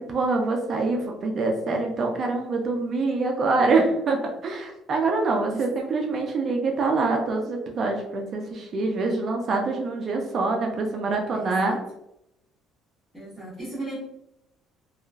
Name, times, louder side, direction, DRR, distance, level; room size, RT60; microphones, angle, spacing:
voice 1, 0.1-11.8, right 3 dB, 35° right, 2 dB, 0.4 m, -25 dB
voice 2, 11.3-11.8 13.1-14.0, right 2 dB, ahead, -12 dB, 1.0 m, -36 dB
2.9 x 2.4 x 2.3 m, 0.83 s
cardioid pair, 160°, 0 cm